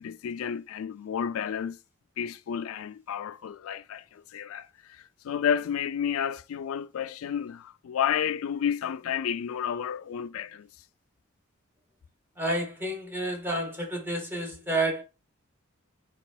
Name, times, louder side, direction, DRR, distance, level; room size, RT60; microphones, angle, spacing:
voice 1, 0.0-1.8 2.2-10.7, left 8 dB, 85° left, 0.3 m, -31 dB
voice 2, 12.4-15.0, right 1 dB, 10° right, 1.2 m, -30 dB
4.4 x 4.0 x 2.2 m
head